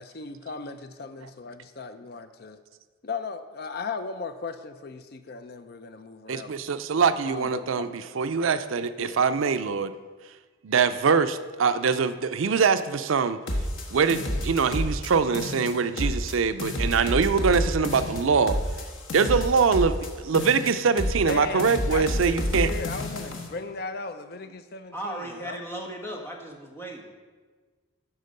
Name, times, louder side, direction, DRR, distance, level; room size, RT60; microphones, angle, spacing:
voice 1, 0.0-2.6 3.0-6.5 7.2-7.9 9.0-9.2 21.3-25.6, left 4 dB, 50° left, 10 dB, 0.5 m, -37 dB
voice 2, 6.3-9.9 10.6-13.4 13.9-18.6 19.1-22.7, right 5 dB, 80° right, 12 dB, 0.5 m, -23 dB
sound 1, 13.5-15.1 15.3-16.3 16.6-20.1 20.3-21.3 21.6-23.5, left 1 dB, 80° left, 1.3 m, -29 dB
voice 3, 24.9-27.1, right 1 dB, 10° left, 0 dB, 1.2 m, -36 dB
12.0 x 4.4 x 6.5 m, 1.4 s
head